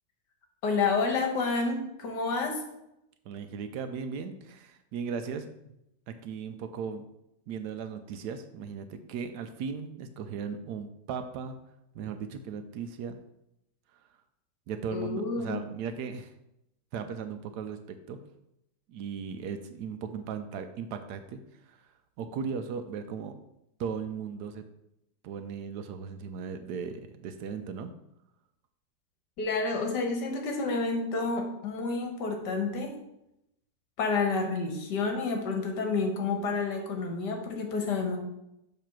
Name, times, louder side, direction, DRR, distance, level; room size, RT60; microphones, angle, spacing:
voice 1, 0.6-2.6 14.9-15.6 29.4-32.9 34.0-38.2, left 4 dB, 70° left, 3 dB, 1.6 m, -29 dB
voice 2, 3.3-5.5 6.1-7.0 7.5-11.6 11.9-13.2 14.7-16.3 16.9-18.2 18.9-21.4 21.7-21.8 22.2-23.3 23.8-24.7 25.2-27.9, right 6 dB, 75° right, 8 dB, 1.0 m, -37 dB
6.8 x 3.3 x 5.8 m, 0.85 s
omnidirectional pair, 1.9 m